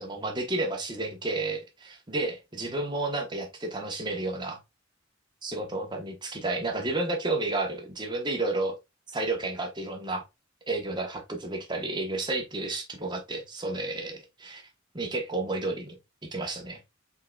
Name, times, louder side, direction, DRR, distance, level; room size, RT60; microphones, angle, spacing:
voice 1, 0.0-4.6 5.4-8.8 9.1-10.2 10.7-14.6 14.9-16.0 16.3-16.8, right 2 dB, 20° right, 1.1 m, -31 dB
5.4 x 3.8 x 2.3 m
head